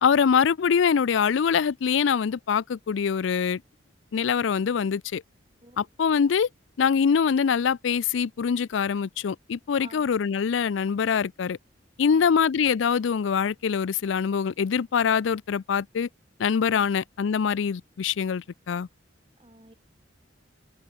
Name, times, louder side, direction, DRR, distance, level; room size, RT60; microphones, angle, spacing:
voice 1, 0.0-3.6 4.1-5.2 5.8-6.5 6.8-11.6 12.0-16.1 16.4-18.9, left 6 dB, 75° left, 0.4 m, -24 dB
voice 2, 5.6-5.9 9.8-10.1 12.0-12.4 16.7-17.0 19.4-19.7, right 2 dB, 30° right, 6.8 m, -51 dB
open air
head